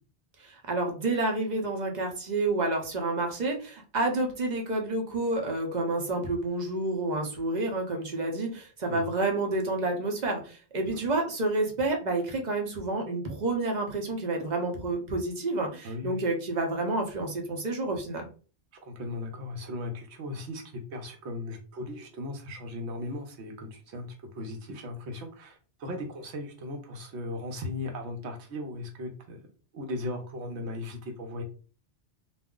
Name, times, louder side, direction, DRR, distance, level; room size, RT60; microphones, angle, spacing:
voice 1, 0.4-18.3, right 2 dB, 45° right, 2 dB, 0.7 m, -29 dB
voice 2, 15.8-16.2 18.8-20.6 20.9-29.4 29.7-31.4, left 1 dB, 80° right, 3 dB, 0.9 m, -37 dB
2.4 x 2.0 x 3.6 m, 0.37 s
omnidirectional pair, 1.1 m